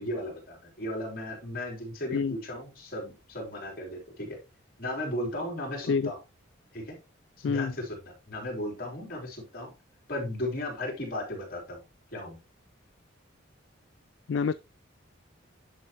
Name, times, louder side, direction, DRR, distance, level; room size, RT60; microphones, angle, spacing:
voice 1, 0.0-4.4 4.8-6.2 6.7-7.0 7.4-9.7 10.1-11.8 12.1-12.4, left 1 dB, 45° left, 3.8 m, -35 dB
voice 2, 2.1-2.3 5.9-6.1 7.4-7.7 14.3-14.5, left 5 dB, 65° left, 0.3 m, -27 dB
10.5 x 5.7 x 3.0 m
head